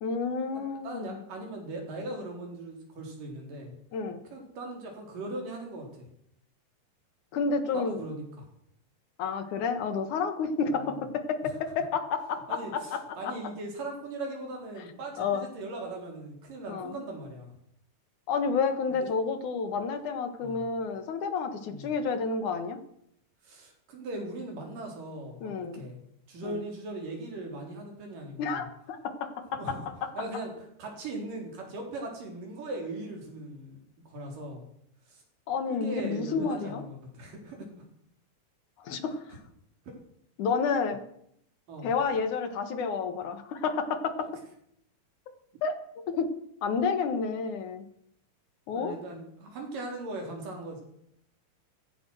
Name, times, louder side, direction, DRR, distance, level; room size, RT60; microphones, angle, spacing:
voice 1, 0.0-1.2 3.9-4.2 7.3-8.0 9.2-13.3 15.2-15.5 16.7-17.0 18.3-22.8 25.4-25.8 26.4-26.6 28.4-30.1 35.5-36.8 38.8-39.4 40.4-41.0 41.8-44.3 45.6-46.3 46.6-47.9 48.7-49.0, left 5 dB, 70° left, 9 dB, 2.8 m, -30 dB
voice 2, 0.8-3.7 4.3-6.1 7.7-8.2 10.7-10.9 12.5-17.5 19.0-19.1 20.4-20.6 21.6-21.9 23.4-26.0 26.3-28.7 29.6-29.8 30.2-30.5 30.8-34.6 35.1-35.2 35.7-37.7 41.7-41.9 44.2-44.3 48.7-50.8, right 2 dB, 80° right, 1 dB, 5.5 m, -39 dB
15.5 x 15.0 x 6.3 m, 0.72 s
omnidirectional pair, 3.8 m